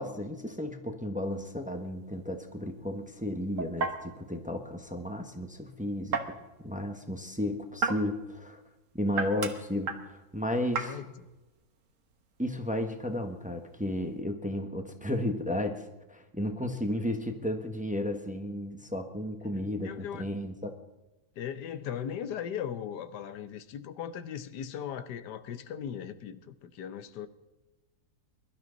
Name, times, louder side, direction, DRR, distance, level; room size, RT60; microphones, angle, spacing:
voice 1, 0.0-8.6 8.9-11.0 12.4-15.8 16.1-20.7, left 1 dB, 5° right, 5 dB, 1.1 m, -33 dB
sound 1, 1.2-14.2, right 4 dB, 55° right, 1.6 m, -39 dB
voice 2, 10.8-11.1 19.5-20.3 21.4-27.3, left 9 dB, 85° left, 12 dB, 1.4 m, -38 dB
22.0 x 12.0 x 4.0 m, 1.0 s
omnidirectional pair, 1.7 m